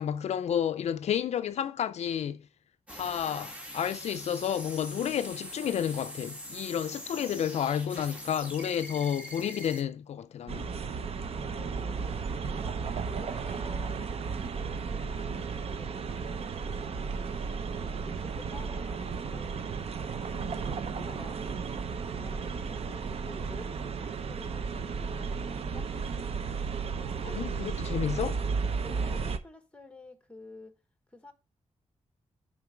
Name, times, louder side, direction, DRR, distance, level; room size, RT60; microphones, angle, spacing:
voice 1, 0.0-2.5 2.9-10.7 27.2-28.4, left 9 dB, 65° left, 0.4 m, -31 dB
sound 1, 2.9-9.8, equal, 10° right, 1.8 m, -43 dB
sound 2, 10.5-29.4, right 5 dB, 55° right, 0.7 m, -34 dB
voice 2, 11.3-14.1 14.5-21.7 22.1-25.9 27.0-27.8 28.8-30.7 31.1-31.3, left 2 dB, 10° left, 1.1 m, -50 dB
sound 3, 16.6-17.2 17.8-18.7 20.2-23.3, right 6 dB, 80° right, 1.3 m, -52 dB
6.9 x 5.1 x 4.9 m
wide cardioid pair, 150°, 12 cm